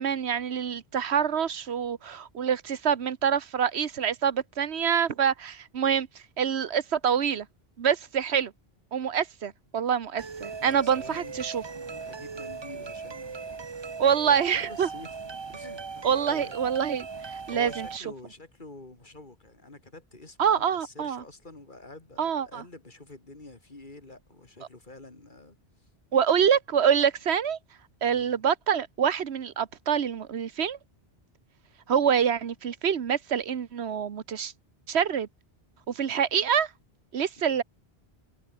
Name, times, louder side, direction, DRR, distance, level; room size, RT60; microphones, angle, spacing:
voice 1, 0.0-6.1 6.4-7.5 7.8-8.5 8.9-11.6 14.0-14.9 16.0-18.0 20.4-21.2 22.2-22.6 26.1-27.6 28.0-30.8 31.9-34.5 34.9-35.3 35.9-36.7 37.1-37.6, right 8 dB, 85° right, 1.3 m, -26 dB
sound 1, 10.2-18.0, right 4 dB, 30° right, 0.7 m, -39 dB
voice 2, 10.6-11.3 11.7-16.6 17.5-25.6 28.0-28.4 37.5-37.6, left 2 dB, 50° left, 3.0 m, -48 dB
omnidirectional pair, 1.1 m